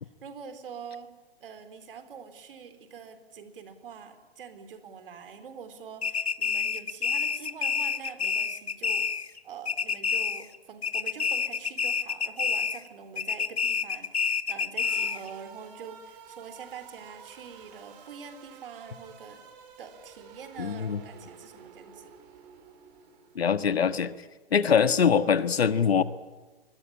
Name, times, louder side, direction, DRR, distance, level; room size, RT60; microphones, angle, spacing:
voice 1, 0.2-1.1 1.4-9.1 9.4-19.5 19.8-22.1, right 6 dB, 60° right, 10 dB, 3.8 m, -45 dB
sound 1, 6.0-9.4 9.6-10.6 10.8-12.9 13.2-15.3, left 6 dB, 90° left, 1.1 m, -28 dB
sound 2, 14.8-23.6, right 7 dB, 40° right, 4.3 m, -51 dB
voice 2, 20.6-21.0 23.3-24.1 24.5-26.0, left 7 dB, 75° left, 12 dB, 1.6 m, -23 dB
25.0 x 21.0 x 9.9 m, 1.2 s
figure-of-eight pair, 125°, 31 cm